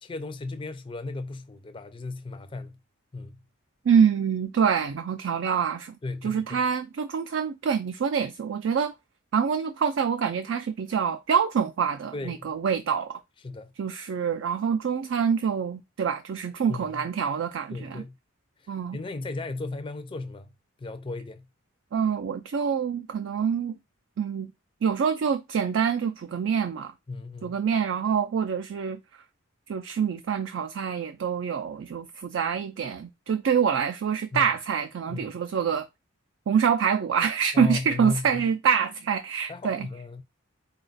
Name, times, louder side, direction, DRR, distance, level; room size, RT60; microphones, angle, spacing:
voice 1, 0.0-2.8 3.1-3.4 6.0-6.6 12.1-12.5 13.4-13.7 16.7-17.1 17.7-18.2 18.6-20.5 20.8-21.4 27.1-27.5 34.3-34.5 35.1-35.3 37.5-38.4 39.5-40.2, left 3 dB, 25° left, 0.4 m, -35 dB
voice 2, 3.9-6.0 6.2-8.9 9.3-13.2 13.8-18.0 18.7-19.0 21.9-23.8 24.2-24.5 24.8-26.9 27.4-29.0 29.7-35.9 36.5-39.9, right 7 dB, 60° right, 0.3 m, -26 dB
4.0 x 2.3 x 3.9 m
head